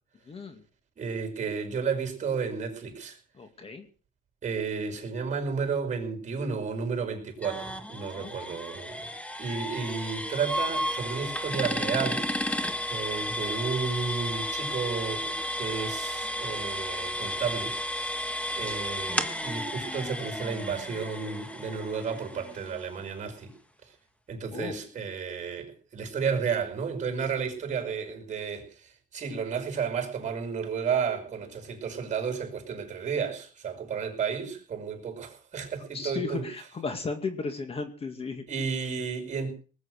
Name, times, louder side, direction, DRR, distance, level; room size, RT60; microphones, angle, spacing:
voice 1, 0.3-0.6 3.4-3.9 8.1-8.6 24.5-24.7 35.9-38.4, left 4 dB, 30° left, 2.1 m, -35 dB
voice 2, 1.0-3.2 4.4-9.1 9.4-12.3 12.9-18.2 18.5-23.5 24.3-36.5 38.5-39.5, right 6 dB, 40° right, 5.4 m, -32 dB
sound 1, 7.4-23.1, left 1 dB, 5° left, 1.5 m, -33 dB
19.5 x 9.6 x 6.5 m
cardioid pair, 140°, 20 cm